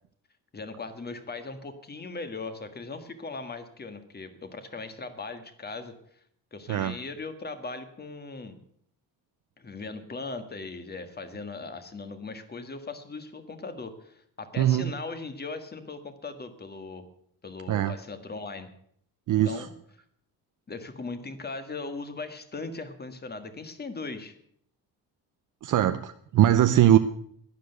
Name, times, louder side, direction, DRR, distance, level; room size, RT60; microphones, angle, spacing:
voice 1, 0.5-5.9 6.5-8.6 9.6-17.0 17.4-18.7 19.4-19.7 20.7-24.4, left 3 dB, 25° left, 9 dB, 1.6 m, -39 dB
voice 2, 14.6-14.9 17.7-17.9 19.3-19.7 25.6-27.0, right 11 dB, 50° right, 9 dB, 0.7 m, -21 dB
11.5 x 10.0 x 8.0 m, 0.66 s
cardioid pair, 130°, 39 cm